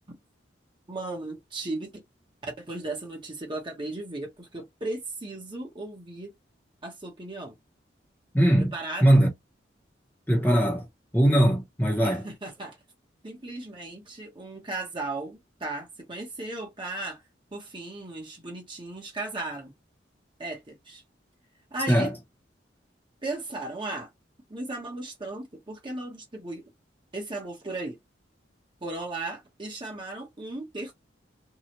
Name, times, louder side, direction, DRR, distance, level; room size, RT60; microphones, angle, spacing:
voice 1, 0.9-1.9 2.4-6.3 6.8-7.6 8.6-9.2 12.0-12.8 13.2-17.2 17.5-19.7 20.4-21.0 21.7-22.1 23.2-24.1 24.5-26.6 27.1-28.0 28.8-30.9, right 2 dB, 25° right, 1.1 m, -36 dB
voice 2, 8.3-8.7 9.0-9.3 10.3-10.9 11.1-12.2 21.9-22.1, right 1 dB, 10° left, 0.9 m, -20 dB
2.8 x 2.4 x 2.9 m
head